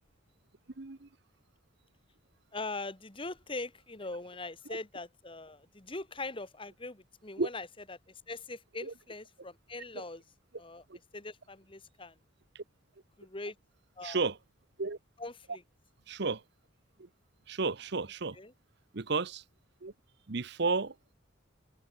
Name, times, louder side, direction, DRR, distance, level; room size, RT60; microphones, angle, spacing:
voice 1, 0.8-1.1 7.4-7.5 8.8-8.9 9.9-10.0 10.9-11.0 12.5-12.6 14.0-14.4 14.8-15.0 16.1-16.4 17.0-17.1 17.5-18.4 18.9-19.4 19.8-19.9 20.3-21.0, right 4 dB, 55° right, 0.9 m, -32 dB
voice 2, 2.5-10.2 10.6-10.8 11.1-12.2 13.2-13.5 14.0-14.2 15.2-15.6 18.4-18.5, left 2 dB, 25° left, 1.7 m, -41 dB
head